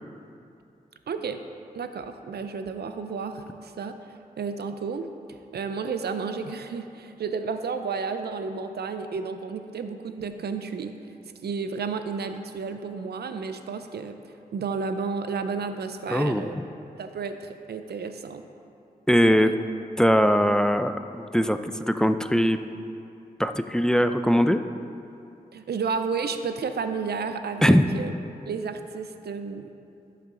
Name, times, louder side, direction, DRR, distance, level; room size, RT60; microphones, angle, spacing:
voice 1, 1.1-1.4 1.7-5.1 5.5-11.0 11.4-14.1 14.5-16.6 17.0-18.4 19.3-19.5 25.5-28.1 28.5-29.7, right 5 dB, 85° right, 8 dB, 0.5 m, -32 dB
voice 2, 16.1-16.6 19.1-19.5 20.0-22.6 23.4-24.6 27.6-27.8, equal, 5° left, 9 dB, 0.4 m, -21 dB
11.5 x 6.8 x 3.8 m, 2.7 s
cardioid pair, 40°, 16 cm